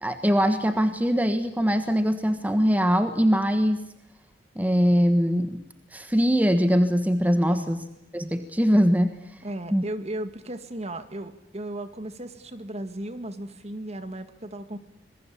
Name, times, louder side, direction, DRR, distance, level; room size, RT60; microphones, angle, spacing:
voice 1, 0.0-3.8 4.5-7.8 8.1-9.1 9.7-9.8, equal, 10° right, 8 dB, 1.4 m, -22 dB
voice 2, 7.5-7.9 9.4-14.8, right 1 dB, 35° right, 10 dB, 2.1 m, -36 dB
26.5 x 21.5 x 8.6 m, 0.79 s
head